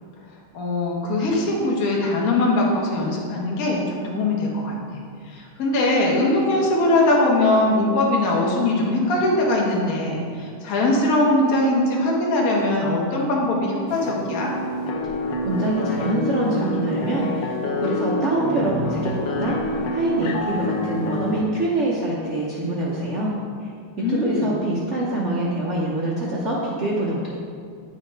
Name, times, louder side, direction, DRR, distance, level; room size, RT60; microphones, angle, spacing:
voice 1, 0.5-14.5 24.0-24.6, left 2 dB, 50° left, -3 dB, 1.3 m, -21 dB
sound 1, 13.9-21.4, left 1 dB, 85° left, 0.8 m, -27 dB
voice 2, 15.4-23.7 24.1-27.3, right 1 dB, 70° right, -6 dB, 0.7 m, -25 dB
8.6 x 3.8 x 4.5 m, 2.2 s
omnidirectional pair, 2.4 m